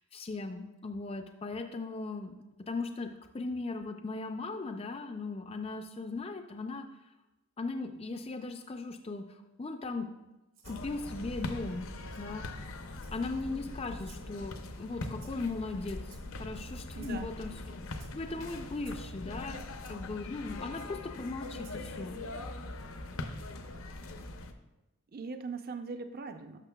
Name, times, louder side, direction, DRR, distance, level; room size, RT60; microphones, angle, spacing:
voice 1, 0.0-2.4 2.7-3.1 3.3-6.9 7.6-10.1 10.7-11.9 12.2-17.5 18.1-22.2, left 3 dB, 25° left, 6 dB, 0.4 m, -38 dB
Rattle (instrument), 10.5-10.8 12.1-12.2 13.0-13.4 14.0-14.3 15.2-15.5 16.1-16.5 17.0-17.2 17.9-18.1 18.8-19.0 19.9-20.0 20.8-20.9 21.6-21.8, right 7 dB, 65° right, 1.4 m, -58 dB
sound 1, 10.6-24.5, left 2 dB, 70° left, 0.6 m, -42 dB
voice 2, 16.9-17.3 25.1-26.6, right 4 dB, 40° right, 7 dB, 0.5 m, -40 dB
12.0 x 6.2 x 2.3 m, 1.1 s
head